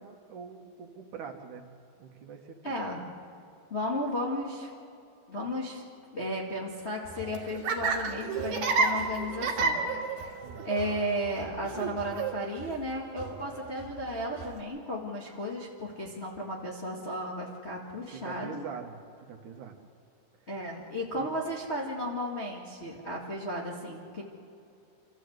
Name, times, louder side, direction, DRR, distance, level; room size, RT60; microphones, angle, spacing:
voice 1, 0.0-1.6 2.0-2.7 10.4-10.7 18.1-19.8 21.1-21.3, right 6 dB, 65° right, 3 dB, 2.6 m, -44 dB
voice 2, 2.6-3.0 3.7-4.7 5.3-5.8 6.1-9.8 10.1-10.2 10.6-18.6 20.5-24.2, equal, 25° left, -3 dB, 1.4 m, -34 dB
Laughter, 7.1-14.6, right 4 dB, 85° right, 3.7 m, -32 dB
27.0 x 14.5 x 8.0 m, 2.6 s
omnidirectional pair, 4.1 m